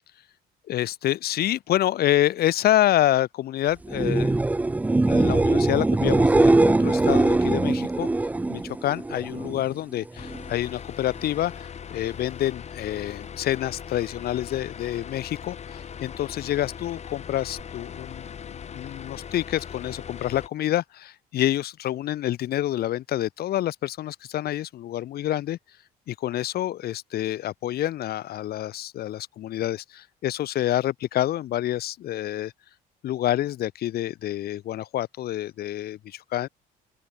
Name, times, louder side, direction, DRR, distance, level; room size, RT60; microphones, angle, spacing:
voice 1, 0.7-4.3 5.1-8.1 8.5-25.6 26.1-32.5 33.0-36.5, left 13 dB, 65° left, 2.8 m, -27 dB
sound 1, 3.8-9.6 10.0-10.5 17.6-17.7, right 2 dB, 10° right, 0.4 m, -22 dB
sound 2, 10.2-20.5, left 7 dB, 40° left, 3.5 m, -40 dB
open air
cardioid pair, 110°, 17 cm